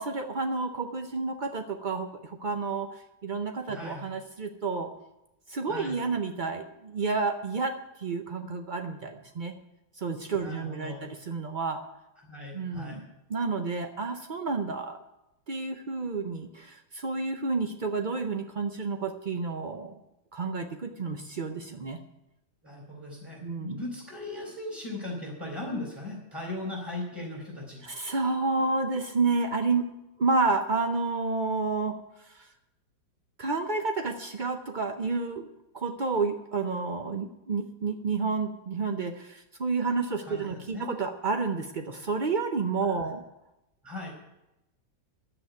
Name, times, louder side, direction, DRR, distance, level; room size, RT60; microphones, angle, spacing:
voice 1, 0.0-4.9 5.5-9.6 10.0-11.9 12.5-15.0 15.5-20.0 20.3-22.0 23.4-23.8 27.8-29.9 30.2-32.0 32.3-32.5 33.4-35.5 35.7-43.2, right 4 dB, 80° right, 6 dB, 0.4 m, -30 dB
voice 2, 3.7-4.1 5.7-6.0 10.3-11.1 12.2-13.0 22.6-27.9 40.2-40.9 42.9-43.1 43.8-44.1, left 2 dB, 10° right, -4 dB, 4.0 m, -38 dB
10.0 x 7.9 x 9.4 m, 0.91 s
omnidirectional pair, 2.0 m